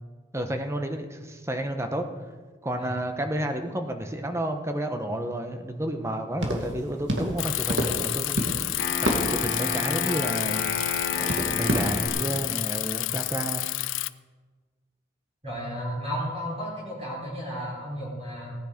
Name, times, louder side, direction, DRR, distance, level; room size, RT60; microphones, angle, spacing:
voice 1, 0.3-2.1 2.6-10.6 11.1-13.7, right 1 dB, 15° right, 6 dB, 1.0 m, -31 dB
sound 1, 6.4-12.1, right 1 dB, 70° right, 2.1 m, -31 dB
Bicycle, 7.4-14.1, left 17 dB, 85° left, 0.4 m, -29 dB
Wind instrument woodwind instrument, 8.7-12.6, left 3 dB, 55° left, 1.7 m, -32 dB
voice 2, 15.4-18.5, equal, 30° right, -5 dB, 4.4 m, -33 dB
17.0 x 9.9 x 5.1 m, 1.4 s
head